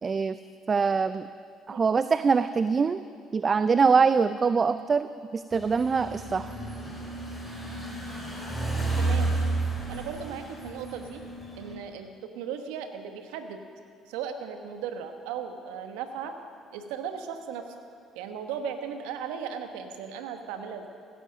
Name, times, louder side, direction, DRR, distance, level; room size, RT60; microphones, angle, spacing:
voice 1, 0.0-0.4 0.7-1.2 1.7-3.0 3.3-6.5, right 5 dB, 35° right, 13 dB, 0.4 m, -24 dB
sound 1, 5.5-11.7, right 3 dB, 5° left, 4.9 m, -32 dB
voice 2, 9.0-9.4 9.9-11.2 11.6-13.6 14.1-16.3 16.7-17.6 18.1-20.9, right 7 dB, 75° right, 7 dB, 1.2 m, -36 dB
16.0 x 11.0 x 6.5 m, 2.3 s
hypercardioid pair, 55°, 0 cm